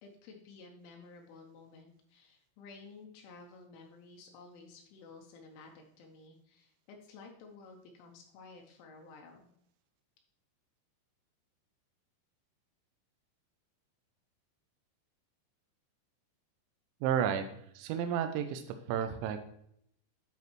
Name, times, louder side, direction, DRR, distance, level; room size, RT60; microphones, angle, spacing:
voice 1, 0.0-9.5, left 4 dB, 85° left, 2 dB, 3.1 m, -53 dB
voice 2, 17.0-17.5 17.8-18.6 18.9-19.5, right 9 dB, 85° right, 8 dB, 2.6 m, -31 dB
10.5 x 5.2 x 3.0 m, 0.72 s
omnidirectional pair, 5.7 m